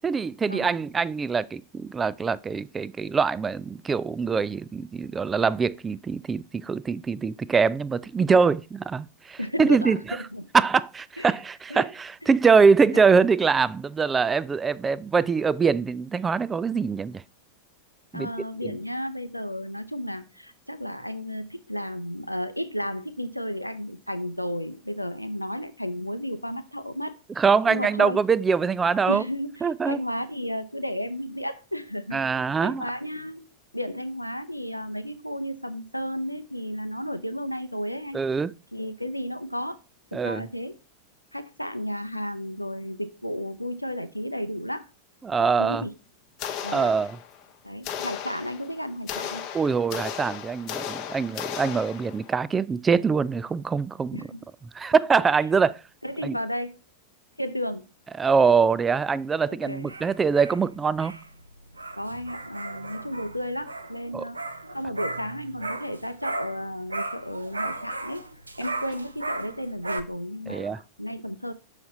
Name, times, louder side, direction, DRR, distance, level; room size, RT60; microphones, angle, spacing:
voice 1, 0.0-10.0 10.5-17.2 18.1-18.3 18.6-18.7 27.4-29.2 29.6-30.0 32.1-32.8 38.1-38.5 40.1-40.4 45.2-45.8 46.7-47.2 49.5-54.2 54.7-55.8 56.2-56.4 58.2-61.2 64.1-64.3 70.5-70.8, right 5 dB, 15° right, 0.3 m, -23 dB
voice 2, 9.4-10.5 11.2-11.4 11.7-11.9 12.2-12.3 12.9-13.0 18.1-27.1 27.7-28.2 29.0-32.2 32.6-33.5 33.7-38.2 38.7-39.8 40.1-40.8 41.3-44.9 45.4-45.9 46.6-46.9 47.6-49.5 54.1-54.4 56.0-56.7 57.4-57.9 59.5-59.9 61.9-64.4 64.7-68.2 68.6-71.5, equal, 90° left, 0.5 m, -33 dB
sound 1, 46.4-47.5 47.8-52.3, left 9 dB, 40° left, 1.0 m, -35 dB
dogs barking, 59.6-66.6 66.9-70.0, right 2 dB, 80° right, 0.6 m, -36 dB
7.0 x 4.9 x 4.1 m
figure-of-eight pair, 90°, 0 cm